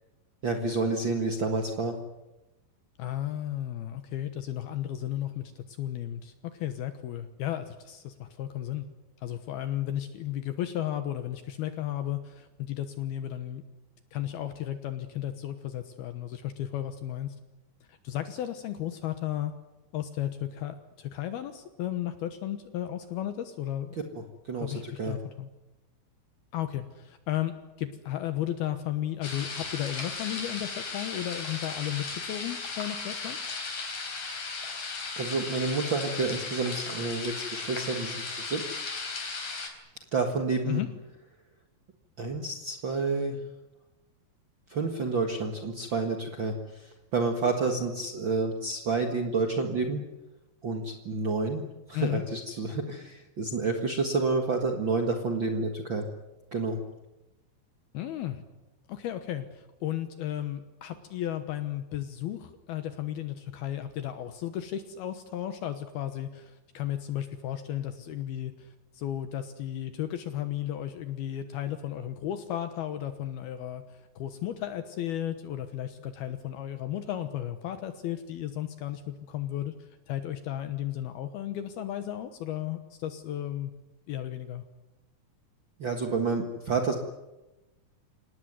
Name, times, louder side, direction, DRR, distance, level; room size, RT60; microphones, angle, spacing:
voice 1, 0.4-2.0 24.5-25.2 35.2-38.8 40.1-40.8 42.2-43.4 44.7-50.0 50.6-51.6 51.9-56.1 56.5-56.8 85.8-86.9, right 3 dB, 60° right, 4 dB, 1.2 m, -29 dB
voice 2, 3.0-8.9 9.2-13.6 14.1-17.4 17.9-19.5 19.9-24.0 24.6-25.5 26.5-33.5 40.7-40.9 51.9-52.2 57.9-58.4 58.9-83.7 84.1-84.6, left 12 dB, 70° left, 9 dB, 2.8 m, -34 dB
sound 1, 29.2-39.7, left 4 dB, 45° left, 5.3 m, -36 dB
26.5 x 19.0 x 9.5 m, 1.0 s
omnidirectional pair, 5.0 m